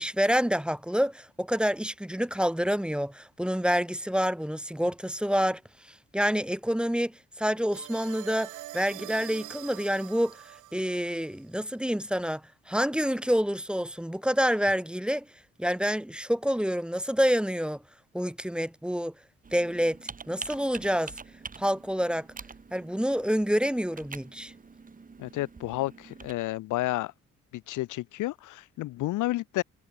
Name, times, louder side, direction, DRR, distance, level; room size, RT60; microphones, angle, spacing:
voice 1, 0.0-10.4 10.7-15.3 15.6-17.8 18.1-19.1 19.5-21.2 21.6-22.3 22.7-24.5, equal, 5° right, 1.2 m, -28 dB
sound 1, 7.7-11.4 14.7-14.8, right 16 dB, 80° right, 0.8 m, -44 dB
Computer keyboard, 19.4-26.3, right 4 dB, 25° right, 1.9 m, -45 dB
voice 2, 25.2-27.1 27.7-29.6, left 17 dB, 85° left, 0.8 m, -31 dB
cardioid pair, 90°, 30 cm